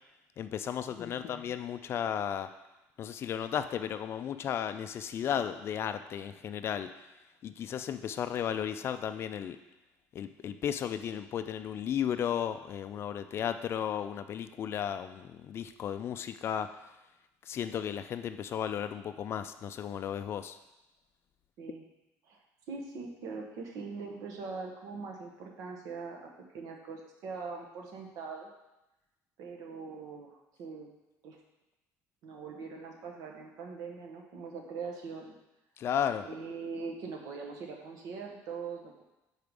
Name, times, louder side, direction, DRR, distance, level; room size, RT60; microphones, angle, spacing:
voice 1, 0.4-2.5 3.0-6.9 7.4-9.6 10.1-16.7 17.5-20.6 35.8-36.3, left 9 dB, 40° left, 10 dB, 0.3 m, -34 dB
voice 2, 0.9-1.3 21.6-21.8 22.3-22.4 22.7-28.5 29.4-30.9 31.2-31.4 32.2-35.3 36.2-39.0, right 4 dB, 65° right, 1 dB, 1.1 m, -42 dB
4.7 x 4.7 x 5.2 m, 0.98 s
cardioid pair, 140°, 6 cm